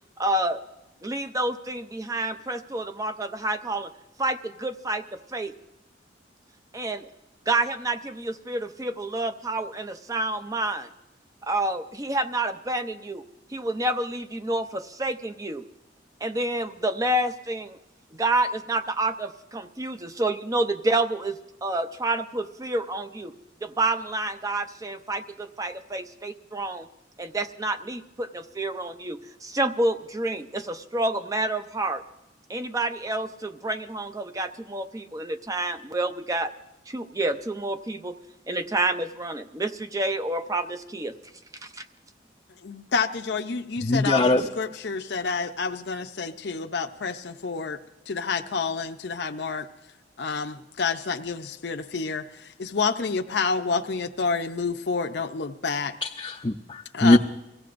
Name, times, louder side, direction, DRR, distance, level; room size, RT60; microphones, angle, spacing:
voice 1, 0.2-0.6 1.0-3.9 4.2-5.5 6.7-7.1 7.5-10.9 11.4-13.2 13.5-15.6 16.2-17.8 18.1-23.3 23.6-26.9 27.2-32.0 32.5-36.5 36.9-38.2 38.5-41.1 41.6-41.9, right 2 dB, 20° right, 9 dB, 0.5 m, -28 dB
voice 2, 42.6-47.8 48.1-49.7 50.2-52.3 52.6-55.9 56.9-57.2, left 5 dB, 65° left, 4 dB, 0.6 m, -29 dB
voice 3, 43.8-44.5 56.0-57.2, left 2 dB, 25° left, 1 dB, 0.5 m, -21 dB
23.5 x 16.0 x 2.6 m, 0.98 s
head